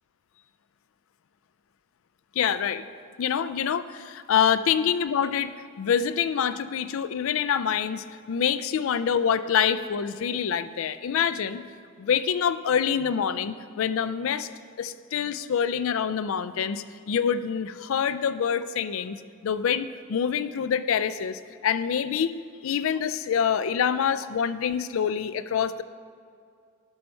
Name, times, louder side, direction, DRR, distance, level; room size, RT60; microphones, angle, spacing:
voice 1, 2.4-2.8 3.2-5.5 5.8-11.6 12.0-14.5 14.8-19.2 19.4-22.3 22.6-25.8, left 7 dB, 65° left, 13 dB, 0.4 m, -26 dB
12.5 x 5.5 x 4.5 m, 2.4 s
head